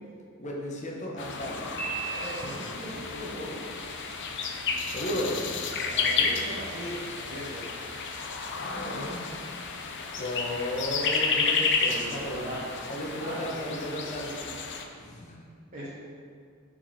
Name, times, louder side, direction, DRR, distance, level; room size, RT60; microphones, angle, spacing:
voice 1, 0.4-1.9 4.9-5.3 8.6-9.2 10.1-12.5 12.9-14.5 15.0-15.4, equal, 35° left, -2 dB, 1.1 m, -34 dB
sound 1, 1.2-14.8, left 5 dB, 55° left, 0.6 m, -31 dB
Piano, 1.8-2.9, right 6 dB, 10° left, 1.3 m, -36 dB
voice 2, 2.0-3.6 5.8-7.6 11.9-12.7 13.2-13.5 15.7-15.9, equal, 35° right, -8 dB, 1.1 m, -39 dB
6.6 x 5.3 x 4.2 m, 2.2 s
head